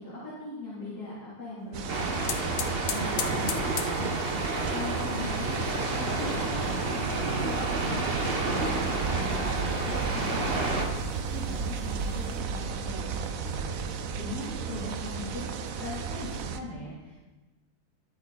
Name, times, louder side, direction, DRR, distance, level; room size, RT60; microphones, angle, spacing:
voice 1, 0.0-4.2 4.7-5.6 6.0-8.0 8.4-13.8 14.1-15.5 15.8-17.1, left 1 dB, 80° left, -9 dB, 4.4 m, -40 dB
sound 1, 1.7-16.6, right 5 dB, 65° right, 1.2 m, -34 dB
sound 2, 1.8-12.4, left 7 dB, 50° left, 1.0 m, -42 dB
sound 3, 1.9-10.9, right 2 dB, 40° right, 1.7 m, -30 dB
21.0 x 8.6 x 4.4 m, 1.1 s
omnidirectional pair, 1.7 m